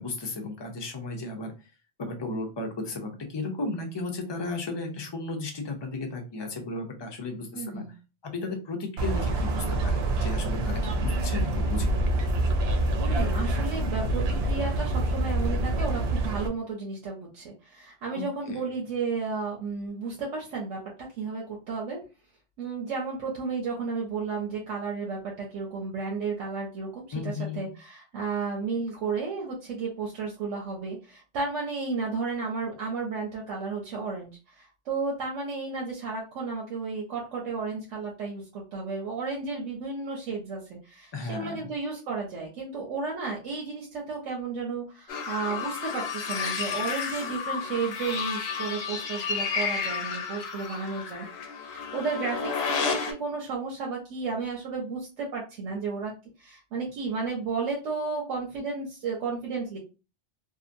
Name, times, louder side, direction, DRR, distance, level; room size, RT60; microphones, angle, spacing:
voice 1, 0.0-1.5 2.0-7.8 8.2-12.0 18.1-18.7 27.1-27.7 41.1-41.7, left 3 dB, 35° left, 3 dB, 0.4 m, -34 dB
voice 2, 7.5-7.9 13.0-20.8 21.1-22.0 22.6-51.3 51.7-56.1 56.4-59.8, right 4 dB, 90° right, -2 dB, 1.1 m, -33 dB
sound 1, 9.0-16.5, right 2 dB, 65° right, 0.8 m, -26 dB
sound 2, 45.1-53.1, left 6 dB, 65° left, 0.8 m, -31 dB
2.8 x 2.4 x 2.5 m, 0.31 s
omnidirectional pair, 1.2 m